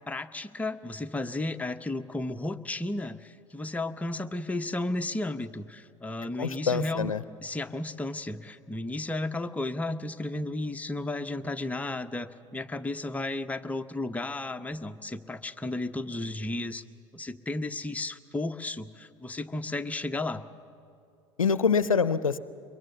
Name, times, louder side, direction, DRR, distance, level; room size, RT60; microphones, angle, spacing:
voice 1, 0.1-7.1 7.4-16.8 17.1-20.4, left 2 dB, 10° left, 7 dB, 0.8 m, -33 dB
voice 2, 6.4-7.2 21.4-22.4, left 5 dB, 90° left, 16 dB, 0.5 m, -25 dB
22.5 x 22.0 x 7.0 m, 2.5 s
figure-of-eight pair, 75°, 17 cm